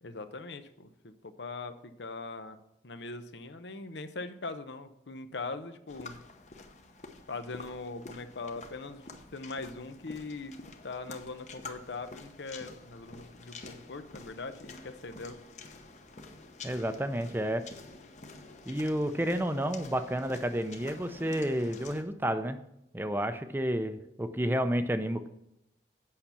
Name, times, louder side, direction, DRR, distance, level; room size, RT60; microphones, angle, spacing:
voice 1, 0.0-2.6 2.8-6.2 7.3-15.4, left 3 dB, 85° left, 10 dB, 0.8 m, -41 dB
sound 1, 5.9-22.0, left 3 dB, 40° left, 0.8 m, -49 dB
voice 2, 16.6-17.6 18.7-22.6 22.9-25.3, equal, 10° right, 9 dB, 0.5 m, -30 dB
8.6 x 5.7 x 6.9 m, 0.83 s
head